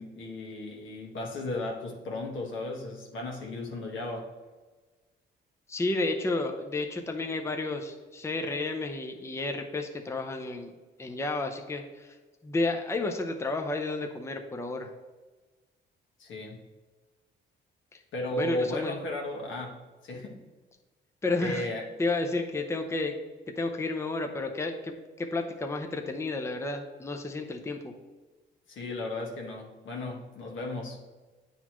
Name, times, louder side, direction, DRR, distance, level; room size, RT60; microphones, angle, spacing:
voice 1, 0.0-4.3 16.2-16.6 18.1-20.4 21.4-21.9 28.7-31.0, left 1 dB, 75° left, 0 dB, 1.6 m, -35 dB
voice 2, 5.7-10.7 11.0-12.2 12.4-14.9 18.3-19.0 21.2-21.7 22.0-23.2 23.6-27.9, left 2 dB, 15° left, 4 dB, 0.6 m, -31 dB
9.2 x 4.0 x 3.0 m, 1.3 s
cardioid pair, 90°, 20 cm